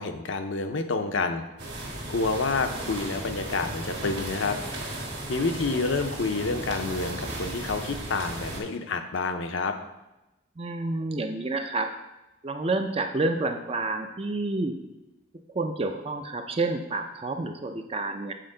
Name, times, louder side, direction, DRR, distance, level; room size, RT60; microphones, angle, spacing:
voice 1, 0.0-1.4 2.1-4.6 5.3-9.8, left 3 dB, 65° left, 6 dB, 0.6 m, -28 dB
sound 1, 1.6-8.6, right 1 dB, 55° right, 1.5 m, -35 dB
voice 2, 10.6-11.9 12.4-14.8 15.5-18.3, right 2 dB, 25° right, 6 dB, 0.4 m, -29 dB
7.6 x 4.4 x 3.8 m, 0.97 s
head